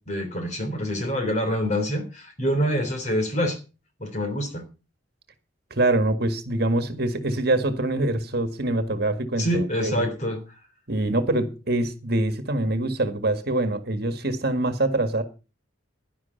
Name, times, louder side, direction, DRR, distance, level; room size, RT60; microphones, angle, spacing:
voice 1, 0.1-3.6 4.0-4.6 6.9-7.0 9.4-10.4, equal, 35° left, 3.4 m, -26 dB
voice 2, 5.7-10.1 10.9-15.2, right 2 dB, 50° right, 1.8 m, -24 dB
11.5 x 11.0 x 5.6 m
head